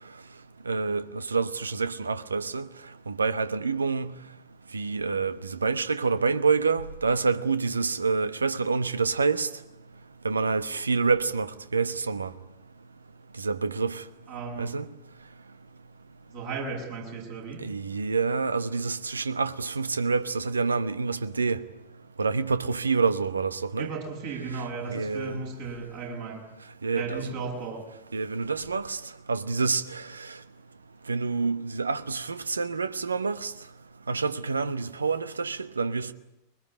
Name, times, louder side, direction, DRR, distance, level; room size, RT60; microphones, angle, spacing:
voice 1, 0.7-1.0 1.3-2.7 3.1-4.1 4.7-9.5 10.2-12.3 13.4-14.0 14.6-14.8 17.6-21.6 22.2-23.9 24.9-25.4 26.8-27.2 28.1-29.0 29.3-30.0 31.1-33.5 34.1-36.1, right 4 dB, 75° right, 1.0 m, -27 dB
voice 2, 14.3-14.7 16.3-17.6 23.8-26.4 26.9-27.8, right 4 dB, 50° right, 7.4 m, -35 dB
22.0 x 20.5 x 9.8 m
figure-of-eight pair, 90°, 0 cm